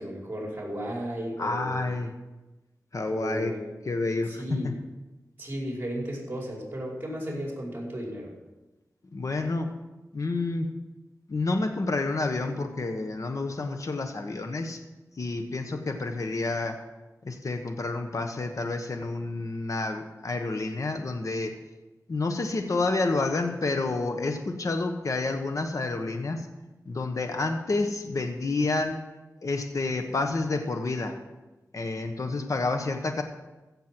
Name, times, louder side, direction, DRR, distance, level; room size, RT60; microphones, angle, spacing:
voice 1, 0.0-1.9 3.1-3.6 4.3-4.7 5.4-8.3, equal, 30° right, -2 dB, 5.0 m, -34 dB
voice 2, 1.4-2.1 2.9-3.5 3.9-4.7 9.1-9.7 10.1-10.7 11.3-14.8 15.2-16.8 17.2-21.5 22.1-26.5 26.9-29.0 29.4-31.2 31.7-33.2, left 3 dB, 60° left, 5 dB, 1.2 m, -29 dB
15.5 x 7.5 x 6.1 m, 1.1 s
wide cardioid pair, 75°, 6 cm